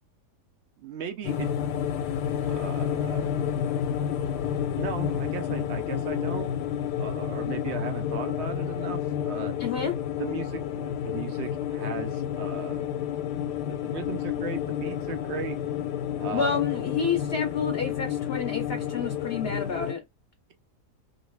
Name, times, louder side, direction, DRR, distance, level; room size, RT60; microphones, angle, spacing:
voice 1, 0.8-1.5 2.4-3.3 4.8-6.5 7.0-9.0 9.3-9.5 10.2-12.9 13.7-15.6 16.2-16.6, right 6 dB, 80° right, 0.6 m, -36 dB
sound 1, 1.2-19.9, left 9 dB, 90° left, 1.2 m, -30 dB
voice 2, 9.6-9.9 16.3-20.0, left 6 dB, 60° left, 0.6 m, -29 dB
2.8 x 2.6 x 3.1 m
omnidirectional pair, 1.8 m